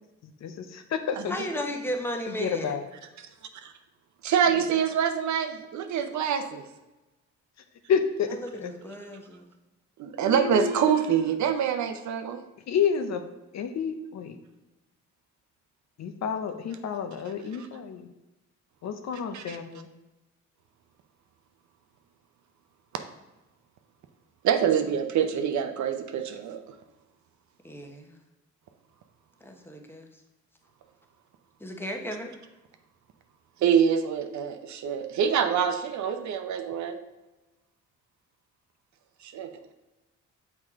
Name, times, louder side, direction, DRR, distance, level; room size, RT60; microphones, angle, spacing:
voice 1, 0.2-1.6 2.3-2.8 7.9-8.7 10.2-11.1 12.7-13.2 13.5-14.4 16.0-18.1 18.8-19.9, left 7 dB, 60° left, 7 dB, 0.7 m, -30 dB
voice 2, 1.3-2.8 8.4-9.5 27.6-28.2 29.4-30.1 31.6-32.4, equal, 5° left, 2 dB, 1.0 m, -35 dB
voice 3, 4.2-6.7 10.0-12.4 19.3-19.6 24.4-26.7 33.6-37.0 39.2-39.5, right 8 dB, 70° right, 7 dB, 0.7 m, -25 dB
6.4 x 4.8 x 3.6 m, 1.0 s
cardioid pair, 90°, 30 cm